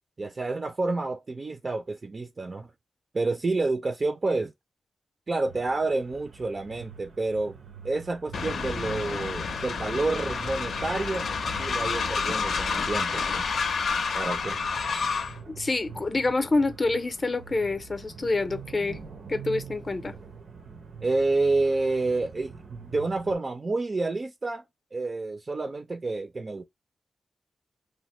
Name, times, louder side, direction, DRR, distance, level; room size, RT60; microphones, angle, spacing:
voice 1, 0.2-2.7 3.1-4.5 5.3-7.6 7.8-11.3 11.6-13.5 14.1-14.6 14.9-15.1 21.0-24.6 24.9-26.6, right 3 dB, 40° right, 0.4 m, -29 dB
sound 1, 5.4-23.3, right 6 dB, 85° right, 0.7 m, -46 dB
Train, 8.3-15.4, left 5 dB, 80° left, 0.5 m, -29 dB
voice 2, 15.5-19.0 19.3-20.1, left 3 dB, 35° left, 0.5 m, -27 dB
3.2 x 2.0 x 3.0 m
wide cardioid pair, 95°, 0 cm